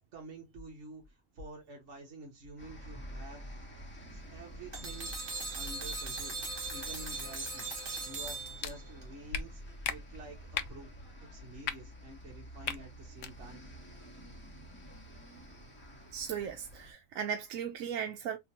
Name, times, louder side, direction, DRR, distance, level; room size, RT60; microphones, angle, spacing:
voice 1, 0.1-3.4 4.1-5.1 5.5-6.4 6.7-7.7 8.0-10.4 10.7-11.0 11.3-13.6, right 2 dB, 60° right, 1.4 m, -49 dB
sound 1, 2.6-16.9, equal, 10° left, 1.0 m, -49 dB
sound 2, 4.7-9.0, right 3 dB, 40° right, 1.4 m, -39 dB
sound 3, 8.6-8.7 9.3-9.4 9.8-10.0 10.5-10.7 11.6-11.7 12.6-12.8 13.1-13.3, left 8 dB, 65° left, 0.7 m, -34 dB
voice 2, 16.1-18.4, right 8 dB, 75° right, 1.0 m, -37 dB
3.5 x 2.7 x 2.8 m
omnidirectional pair, 1.4 m